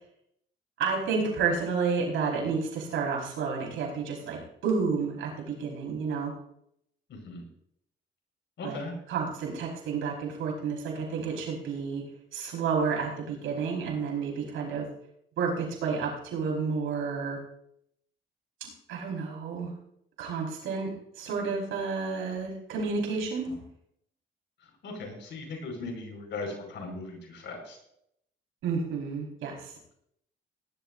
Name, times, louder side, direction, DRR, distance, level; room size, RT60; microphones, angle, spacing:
voice 1, 0.8-6.3 8.6-8.8 9.1-12.0 12.3-14.9 15.4-17.4 18.6-19.7 20.2-20.9 21.2-23.6 28.6-29.7, right 5 dB, 85° right, -1 dB, 5.0 m, -30 dB
voice 2, 7.1-7.4 8.6-9.0 23.5-23.6 24.8-27.8, left 3 dB, 70° left, 2 dB, 5.4 m, -38 dB
19.5 x 12.0 x 2.7 m, 0.72 s
cardioid pair, 90°, 20 cm